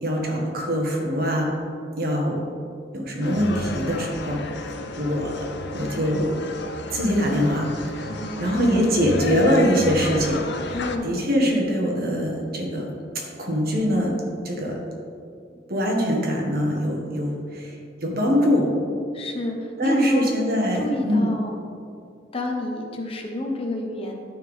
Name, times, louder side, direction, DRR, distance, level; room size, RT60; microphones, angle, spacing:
voice 1, 0.0-1.5 2.0-2.4 2.9-5.5 5.7-6.3 6.9-8.1 8.4-10.8 11.0-12.9 13.4-14.1 14.4-14.8 15.7-17.7 18.0-18.8 19.8-21.3, equal, 55° right, -1 dB, 1.5 m, -23 dB
sound 1, 3.2-11.0, left 2 dB, 65° left, 0.6 m, -33 dB
voice 2, 8.1-8.9 10.7-11.1 19.1-20.3 20.7-21.6 22.3-24.2, left 1 dB, 30° left, 1 dB, 1.0 m, -28 dB
13.0 x 4.5 x 3.7 m, 2.3 s
head